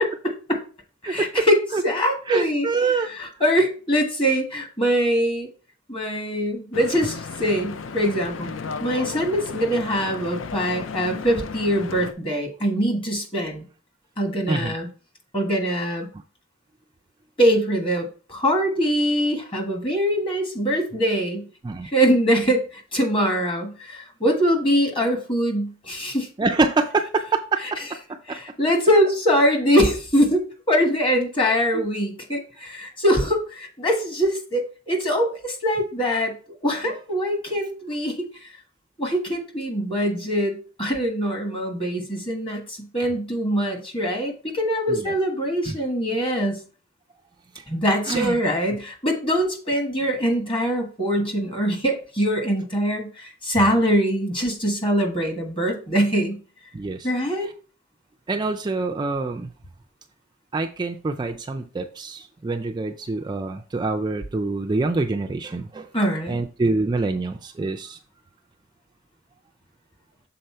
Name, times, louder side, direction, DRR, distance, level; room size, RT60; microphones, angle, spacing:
voice 1, 0.2-0.6 1.0-1.6 1.8-2.7 3.1-5.5 5.9-8.5 8.8-13.6 14.2-14.9 15.3-16.1 17.4-21.4 21.9-26.3 28.3-36.3 36.6-38.3 39.0-46.6 47.7-56.4 57.0-57.5 65.9-66.4, equal, 25° left, 2 dB, 1.5 m, -23 dB
voice 2, 1.0-1.5 1.7-1.8 2.3-3.1 14.5-14.7 21.6-21.9 26.4-27.8 28.3-28.4 31.7-31.8 44.9-45.1 45.7-45.8 48.1-48.3 56.7-57.1 58.3-59.5 60.5-65.9 66.3-68.0, right 3 dB, 20° right, 4 dB, 0.3 m, -25 dB
Stream / Boat Water vehicle, 6.7-12.1, left 5 dB, 70° left, 0.5 m, -34 dB
6.7 x 4.0 x 4.3 m, 0.38 s
head